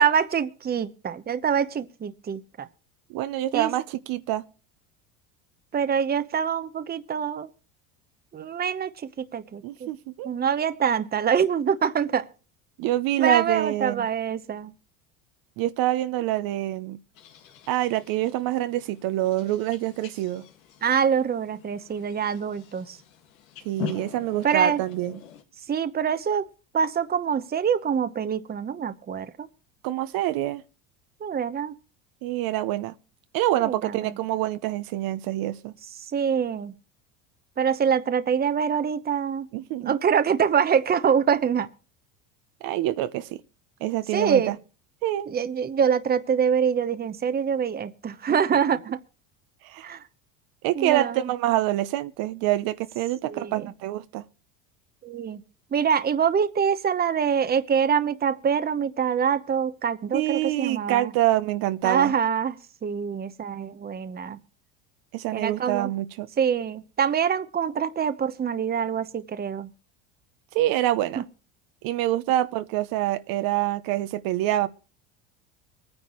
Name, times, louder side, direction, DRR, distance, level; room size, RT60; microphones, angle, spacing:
voice 1, 0.0-2.7 3.5-3.7 5.7-7.5 8.3-9.9 10.2-12.3 13.2-14.7 20.8-23.0 24.4-24.8 25.7-26.5 26.7-29.5 31.2-31.8 33.6-34.2 36.1-36.7 37.6-39.5 39.8-41.7 44.1-44.5 45.3-49.0 49.8-50.0 50.7-51.3 53.2-53.7 55.0-55.4 55.7-61.1 61.8-64.4 65.3-65.9 66.4-69.7 71.2-71.3, right 7 dB, 25° right, 0.9 m, -25 dB
voice 2, 3.1-4.4 9.6-10.3 12.8-14.1 15.6-17.0 17.7-20.4 23.6-25.2 29.8-30.6 32.2-32.9 33.3-35.7 39.5-40.0 42.6-43.4 43.8-44.6 45.0-45.3 48.3-48.4 49.6-49.9 50.6-54.2 60.1-62.1 65.1-66.3 70.5-71.2 71.8-74.7, right 14 dB, 60° right, 0.9 m, -26 dB
sound 1, 17.1-25.4, left 11 dB, 90° left, 1.9 m, -43 dB
23.5 x 9.7 x 3.1 m
supercardioid pair, 95°, 39 cm